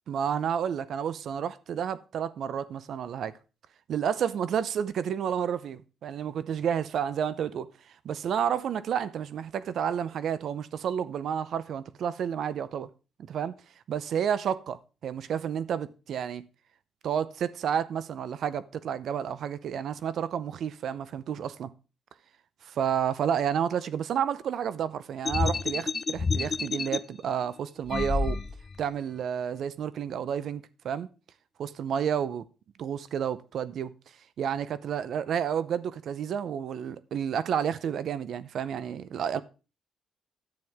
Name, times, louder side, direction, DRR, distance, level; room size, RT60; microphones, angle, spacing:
voice 1, 0.1-3.3 3.9-7.7 8.0-12.9 13.2-13.5 13.9-16.4 17.0-21.7 22.6-28.4 28.8-31.1 31.6-32.4 32.8-33.9 34.4-39.4, right 8 dB, 65° right, 0.6 m, -30 dB
sound 1, 25.2-27.0 27.9-28.8, left 4 dB, 35° left, 0.4 m, -29 dB
10.5 x 9.1 x 3.5 m
cardioid pair, 90°, 0 cm